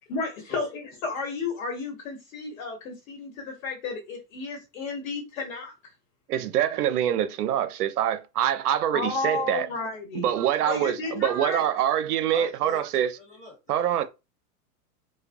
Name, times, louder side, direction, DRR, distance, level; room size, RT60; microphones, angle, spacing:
voice 1, 0.1-5.7 8.9-10.3 10.6-11.6, left 4 dB, 65° left, 1.1 m, -32 dB
voice 2, 6.3-9.7 10.1-13.1 13.7-14.0, right 10 dB, 85° right, 0.6 m, -25 dB
voice 3, 12.3-14.0, left 3 dB, 20° left, 1.3 m, -45 dB
2.2 x 2.2 x 2.5 m
hypercardioid pair, 110°, 44 cm